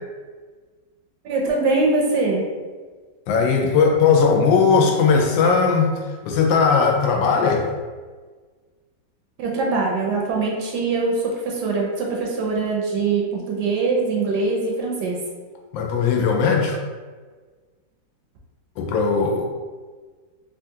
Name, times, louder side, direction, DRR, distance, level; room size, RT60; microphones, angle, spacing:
voice 1, 1.2-2.4 9.4-15.2, right 3 dB, 75° right, -1 dB, 1.1 m, -22 dB
voice 2, 3.3-5.9 6.2-7.7 15.7-16.8 18.8-19.5, left 5 dB, 90° left, 1 dB, 1.3 m, -18 dB
3.6 x 2.3 x 2.7 m, 1.4 s
omnidirectional pair, 2.0 m